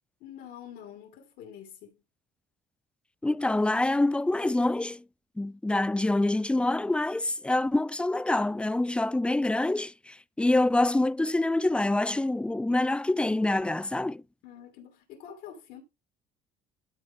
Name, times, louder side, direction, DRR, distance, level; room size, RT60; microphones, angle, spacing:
voice 1, 0.2-2.0 14.4-15.8, left 9 dB, 75° left, 2.3 m, -46 dB
voice 2, 3.2-5.0 5.4-14.2, left 2 dB, 5° left, 0.4 m, -26 dB
13.0 x 4.4 x 3.6 m
supercardioid pair, 80°, 18 cm